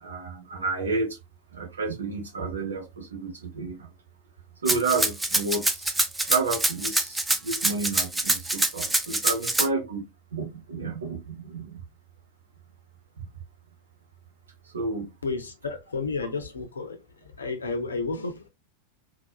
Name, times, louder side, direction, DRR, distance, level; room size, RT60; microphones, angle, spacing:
voice 1, 0.0-1.2 1.5-3.9 4.6-11.8 13.2-13.3 14.7-15.1, right 3 dB, 70° right, 0.9 m, -31 dB
Rattle (instrument), 4.7-9.7, right 2 dB, 5° right, 0.5 m, -25 dB
voice 2, 15.2-17.0 17.3-18.5, left 4 dB, 75° left, 0.7 m, -31 dB
3.9 x 2.4 x 2.2 m
figure-of-eight pair, 90°, 0 cm